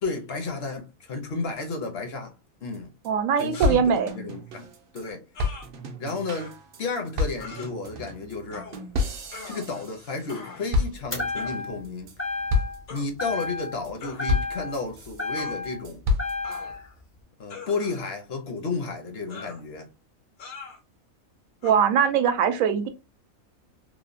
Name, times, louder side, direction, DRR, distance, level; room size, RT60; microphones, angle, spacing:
voice 1, 0.0-2.3 2.6-2.9 3.4-5.2 6.0-8.7 9.5-12.1 12.9-16.0 17.4-19.9, left 3 dB, 60° left, 0.7 m, -32 dB
sound 1, 2.7-2.8 3.0-3.1 3.4-5.0 5.4-10.4 10.7-11.4 11.8-12.2 12.5-13.0 13.4-13.9 14.3-15.2 15.6-16.6, left 3 dB, 60° right, 0.6 m, -30 dB
voice 2, 3.0-4.1 21.6-22.9, right 7 dB, 75° right, 1.0 m, -21 dB
sound 2, 3.5-3.8 5.3-5.7 6.3-6.5 7.4-7.7 8.5-8.8 9.3-9.9 10.3-10.7 11.4-11.6 12.9-13.1 14.0-14.3 15.4-15.6 16.4-17.0 17.5-18.1 19.3-19.6 20.4-20.8 21.6-21.8, left 4 dB, 90° left, 1.4 m, -42 dB
sound 3, 11.1-11.9 12.2-12.9 13.2-13.9 14.2-15.8 16.2-16.8, left 3 dB, 20° left, 0.4 m, -32 dB
3.1 x 2.1 x 2.4 m
omnidirectional pair, 1.5 m